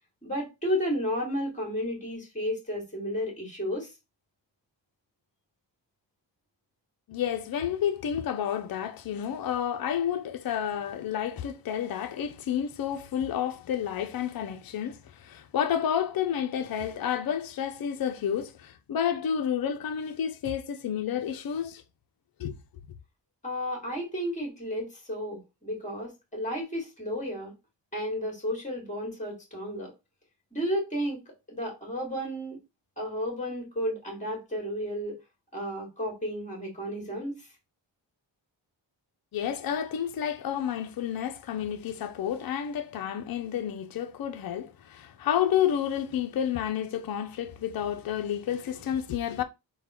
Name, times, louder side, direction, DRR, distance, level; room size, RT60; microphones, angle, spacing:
voice 1, 0.2-3.9 23.4-27.5 27.9-29.9 30.5-31.2 31.5-32.6 33.0-35.2 35.5-37.5, equal, 15° left, 2.1 m, -32 dB
voice 2, 7.1-21.8 22.4-22.6 39.3-49.4, left 9 dB, 50° left, 0.5 m, -30 dB
3.8 x 2.2 x 4.3 m
wide cardioid pair, 110°, 45 cm